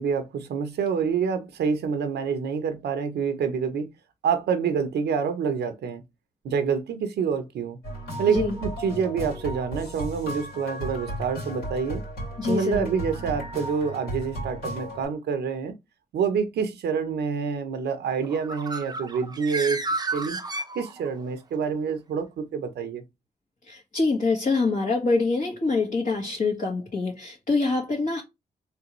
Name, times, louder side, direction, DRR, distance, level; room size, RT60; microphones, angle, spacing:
voice 1, 0.0-3.9 4.2-6.0 6.4-7.8 8.2-12.0 12.5-15.7 16.1-19.8 20.1-20.4 20.7-23.0, right 6 dB, 85° right, 0.7 m, -27 dB
sound 1, 7.8-15.0, right 1 dB, 85° left, 2.4 m, -35 dB
voice 2, 12.4-12.9 23.6-28.2, left 3 dB, 55° left, 1.6 m, -25 dB
Bird, 18.2-21.3, right 2 dB, 25° right, 0.6 m, -32 dB
3.4 x 3.3 x 3.0 m
cardioid pair, 55°, 17 cm